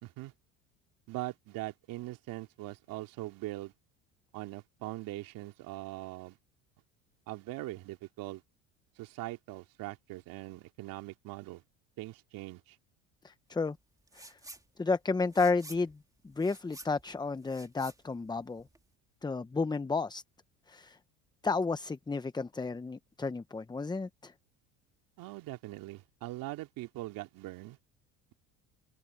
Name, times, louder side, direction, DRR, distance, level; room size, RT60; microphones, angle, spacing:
voice 1, 0.0-0.3 1.1-3.7 4.3-6.4 7.3-8.4 9.0-11.6 12.0-12.8 25.2-27.8, right 18 dB, 65° right, 2.6 m, -41 dB
voice 2, 13.2-13.8 14.1-14.4 14.8-16.0 16.2-18.6 19.2-20.2 20.7-21.0 21.4-24.3, left 4 dB, 10° left, 0.8 m, -32 dB
sound 1, 14.1-14.6 15.0-18.9, right 2 dB, 10° right, 2.7 m, -51 dB
open air
supercardioid pair, 85°, 36 cm